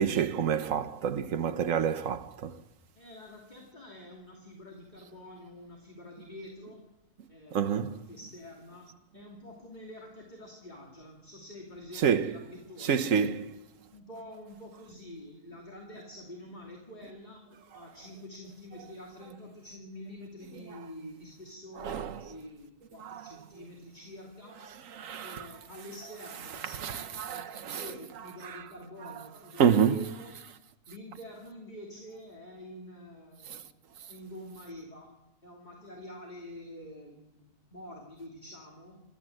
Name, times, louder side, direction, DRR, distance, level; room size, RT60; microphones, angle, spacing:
voice 1, 0.0-2.6 7.5-7.9 12.0-12.3 12.8-13.5 21.8-22.2 23.0-23.2 25.0-25.5 26.8-27.8 28.5-28.6 29.6-30.0, right 7 dB, 60° right, 1.3 m, -28 dB
voice 2, 2.9-6.8 7.3-8.9 9.1-13.4 13.9-17.5 17.7-24.6 25.2-30.3 30.9-33.8 34.1-35.2 35.4-39.0, left 1 dB, 30° left, 3.0 m, -47 dB
27.5 x 13.5 x 7.7 m
omnidirectional pair, 1.6 m